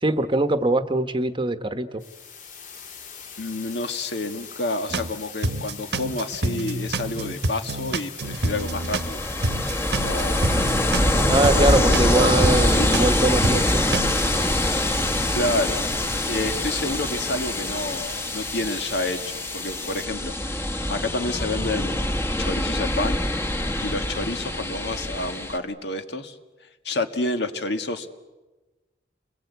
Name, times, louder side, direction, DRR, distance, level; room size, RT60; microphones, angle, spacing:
voice 1, 0.0-2.0 11.3-14.1, right 2 dB, 30° right, 10 dB, 1.1 m, -22 dB
sound 1, 2.0-20.1, left 6 dB, 45° left, 2.5 m, -41 dB
voice 2, 3.4-9.2 9.9-10.6 11.5-13.0 15.3-15.8 16.3-23.2 23.8-26.4 26.8-28.1, left 2 dB, 70° left, 7 dB, 1.8 m, -29 dB
sound 2, 4.9-5.1 5.4-9.1 9.4-13.1 13.4-14.4, right 2 dB, 65° right, 1.1 m, -28 dB
Ocean, 8.2-25.6, left 1 dB, 15° left, 1.5 m, -24 dB
29.5 x 22.0 x 8.3 m, 1.2 s
head